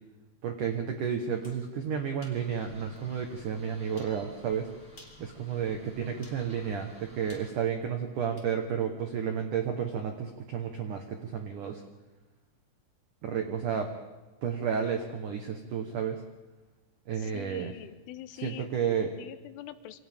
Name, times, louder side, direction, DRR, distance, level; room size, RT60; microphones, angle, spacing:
voice 1, 0.4-4.7 5.2-11.8 13.2-13.9 14.4-16.2 17.1-17.7 18.4-19.1, right 7 dB, 80° right, 4 dB, 1.8 m, -32 dB
sound 1, 1.4-1.6 2.2-2.4 2.9-3.0 4.0-4.2 4.9-5.3 6.2-6.4 7.3-8.5, left 2 dB, 15° left, 3.4 m, -55 dB
sound 2, 2.3-7.5, left 1 dB, ahead, 7.0 m, -54 dB
voice 2, 5.6-6.1 17.2-18.7 19.2-20.0, left 12 dB, 80° left, 11 dB, 3.3 m, -45 dB
28.0 x 25.5 x 3.6 m, 1.2 s
omnidirectional pair, 5.7 m